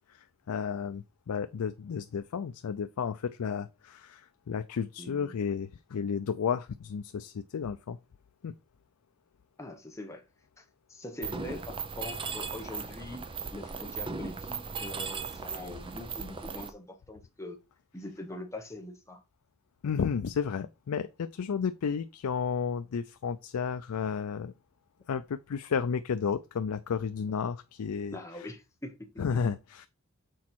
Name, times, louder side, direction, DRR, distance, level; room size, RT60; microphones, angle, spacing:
voice 1, 0.1-8.0 8.4-8.5 19.8-24.5 25.1-28.5 29.2-29.9, left 6 dB, 85° left, 0.4 m, -32 dB
voice 2, 5.0-5.4 9.6-10.2 10.6-13.2 13.5-17.6 17.9-19.2 28.1-29.1, left 2 dB, 15° left, 1.1 m, -43 dB
Mechanisms, 11.2-16.7, right 5 dB, 25° right, 0.6 m, -37 dB
6.2 x 4.2 x 4.5 m
head